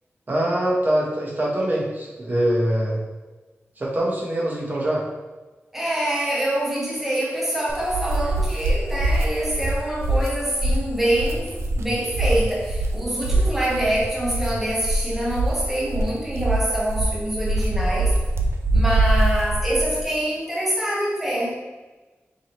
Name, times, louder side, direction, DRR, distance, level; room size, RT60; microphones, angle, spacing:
voice 1, 0.3-3.0 3.8-5.0, right 1 dB, 40° right, -3 dB, 0.9 m, -23 dB
voice 2, 5.7-18.2 18.7-21.6, right 1 dB, 5° right, -5 dB, 0.7 m, -25 dB
sound 1, 7.7-20.0, right 2 dB, 70° right, 0.4 m, -24 dB
4.7 x 3.0 x 2.9 m, 1.2 s
wide cardioid pair, 110°, 5 cm